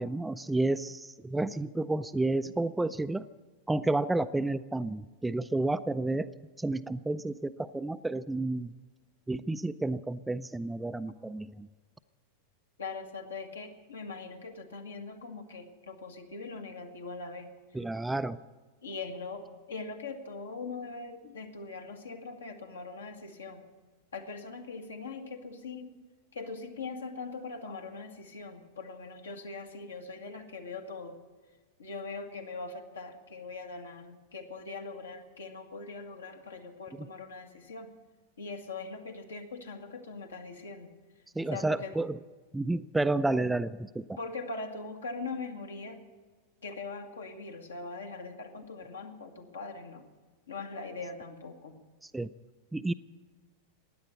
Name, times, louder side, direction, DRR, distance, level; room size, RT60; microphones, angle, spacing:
voice 1, 0.0-3.3 3.7-6.3 6.6-8.7 9.3-11.7 17.7-18.4 37.0-37.1 41.4-42.2 42.5-44.2 52.0-52.3 52.7-52.9, right 2 dB, 5° right, 13 dB, 0.4 m, -31 dB
voice 2, 12.8-17.5 18.8-23.6 24.1-26.0 26.3-31.2 31.8-37.9 38.4-40.9 41.5-42.0 44.2-46.0 46.6-50.1 50.5-51.8, left 3 dB, 70° left, 4 dB, 1.7 m, -41 dB
16.5 x 10.5 x 8.2 m, 1.4 s
figure-of-eight pair, 90°, 0 cm